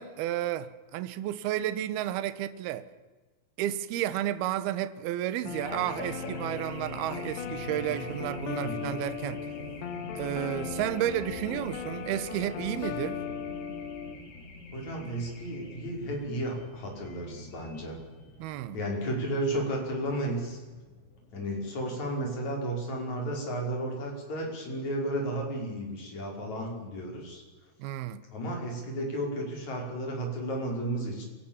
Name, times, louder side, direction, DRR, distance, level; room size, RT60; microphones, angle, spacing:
voice 1, 0.0-2.9 3.6-9.5 10.2-13.2 18.4-18.8 27.8-28.2, right 12 dB, 70° right, 2.6 m, -32 dB
Race car auto racing / Alarm, 5.5-22.4, left 1 dB, 90° left, 7.7 m, -45 dB
sound 1, 5.5-14.2, left 8 dB, 70° left, 3.3 m, -38 dB
voice 2, 8.6-9.0 14.7-17.9 18.7-20.6 21.3-27.4 28.3-31.3, right 1 dB, 35° left, 6.4 m, -33 dB
27.5 x 17.5 x 7.3 m
omnidirectional pair, 5.6 m